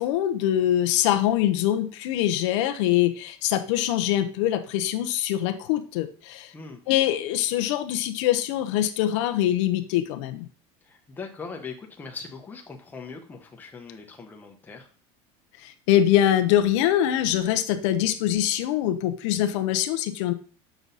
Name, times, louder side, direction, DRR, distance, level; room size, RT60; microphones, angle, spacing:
voice 1, 0.0-6.5 6.9-10.5 15.6-20.3, left 12 dB, 80° left, 7 dB, 0.8 m, -23 dB
voice 2, 10.8-14.9, left 4 dB, 10° left, 2 dB, 1.1 m, -40 dB
7.0 x 6.2 x 4.0 m, 0.42 s
cardioid pair, 170°, 15 cm